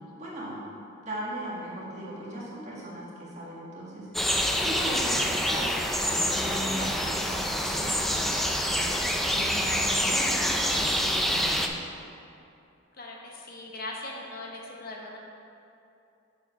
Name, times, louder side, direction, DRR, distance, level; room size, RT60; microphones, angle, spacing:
voice 1, 0.2-0.6 1.0-4.1 4.5-5.7 6.0-8.9 9.3-11.8, right 1 dB, 35° right, -6 dB, 1.8 m, -38 dB
sound 1, 4.1-11.7, equal, ahead, 0.3 m, -26 dB
voice 2, 13.0-15.2, left 2 dB, 50° left, -1 dB, 0.9 m, -40 dB
6.9 x 4.7 x 5.8 m, 2.6 s
head